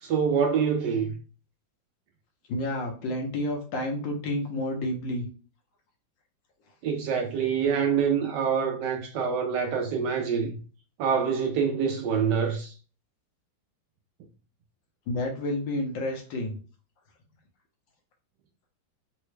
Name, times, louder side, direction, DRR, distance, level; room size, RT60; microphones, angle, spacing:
voice 1, 0.0-1.2 6.8-10.6 11.0-12.7, right 6 dB, 75° right, 1.1 m, -26 dB
voice 2, 2.5-5.3 15.1-16.6, left 1 dB, 75° left, 1.5 m, -30 dB
3.9 x 2.1 x 3.1 m
omnidirectional pair, 2.1 m